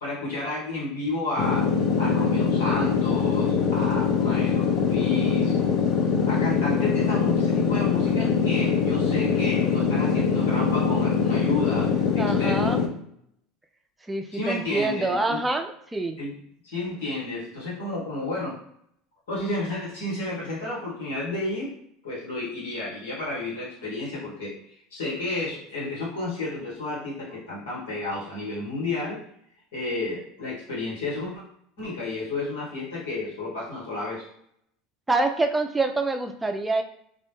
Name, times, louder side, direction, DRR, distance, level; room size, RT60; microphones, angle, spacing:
voice 1, 0.0-1.7 2.0-5.6 6.3-11.9 12.1-12.8 14.3-15.4 16.2-16.4 16.6-18.6 19.3-21.8 22.0-24.5 24.9-29.2 29.7-31.4 31.8-34.2, left 2 dB, 85° left, -7 dB, 1.2 m, -31 dB
sound 1, 1.4-12.9, left 6 dB, 55° left, 0.4 m, -23 dB
voice 2, 12.2-12.8 14.1-16.2 35.1-36.8, right 2 dB, 10° right, 4 dB, 0.4 m, -26 dB
2.3 x 2.1 x 3.1 m, 0.69 s
hypercardioid pair, 90°, 0 cm